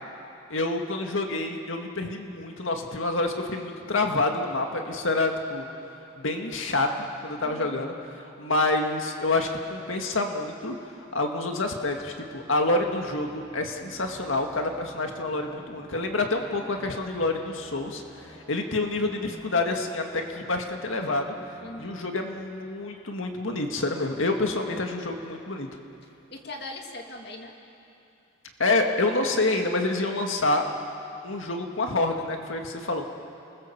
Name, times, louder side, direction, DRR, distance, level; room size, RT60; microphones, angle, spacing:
voice 1, 0.5-5.6 6.2-10.8 11.1-21.3 21.8-25.7 28.6-30.6 31.2-33.1, left 2 dB, 80° left, 3 dB, 1.9 m, -27 dB
voice 2, 7.4-7.8 21.6-22.0 26.0-27.5, left 2 dB, 55° left, 2 dB, 2.4 m, -41 dB
sound 1, 12.6-24.2, equal, 5° left, 7.5 m, -51 dB
30.0 x 20.5 x 7.2 m, 2.7 s
head